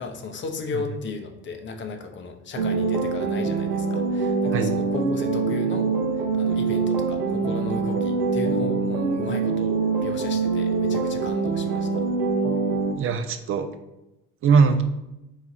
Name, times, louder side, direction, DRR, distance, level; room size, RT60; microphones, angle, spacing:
voice 1, 0.0-5.9 6.4-12.0, left 4 dB, 30° left, 5 dB, 0.7 m, -35 dB
sound 1, 2.6-12.9, right 4 dB, 75° right, 0.6 m, -24 dB
voice 2, 13.0-13.7 14.4-14.8, right 5 dB, 35° right, 9 dB, 0.5 m, -21 dB
4.8 x 2.4 x 4.0 m, 0.94 s
hypercardioid pair, 60°, 38 cm